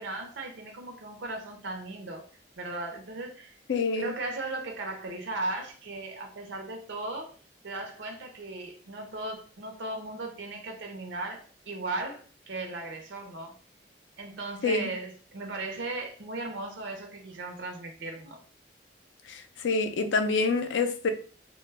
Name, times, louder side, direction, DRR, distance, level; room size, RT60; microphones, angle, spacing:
voice 1, 0.0-2.3 2.6-3.5 4.0-7.3 7.6-13.5 14.2-18.4, right 2 dB, 85° right, 0.5 m, -37 dB
voice 2, 3.7-4.1 14.6-14.9 19.3-21.1, left 4 dB, 90° left, 0.4 m, -27 dB
2.1 x 2.0 x 3.2 m
head